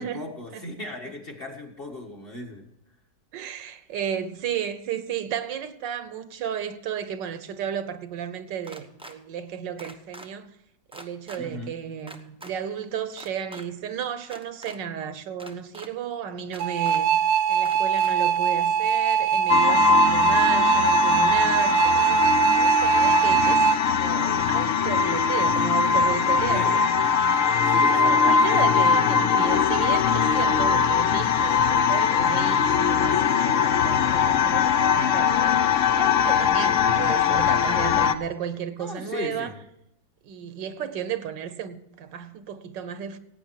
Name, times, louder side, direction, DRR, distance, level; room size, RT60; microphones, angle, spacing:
voice 1, 0.0-2.7 11.4-11.7 26.5-26.8 27.7-28.6 36.6-36.9 38.8-39.6, left 2 dB, 30° left, 1.7 m, -36 dB
voice 2, 3.3-10.5 10.9-17.1 17.5-26.8 27.7-35.6 35.9-39.5 40.2-43.2, right 8 dB, 75° right, 1.5 m, -33 dB
sound 1, 8.6-9.1 9.8-10.3 10.9-11.4 12.1-12.5 13.1-13.6 14.2-14.8 15.4-15.9 16.5-17.0 17.6-18.1, right 1 dB, 10° right, 0.3 m, -43 dB
sound 2, 16.6-23.8, right 7 dB, 60° right, 1.1 m, -21 dB
sound 3, 19.5-38.1, left 6 dB, 65° left, 0.8 m, -21 dB
17.0 x 8.9 x 4.6 m
omnidirectional pair, 2.0 m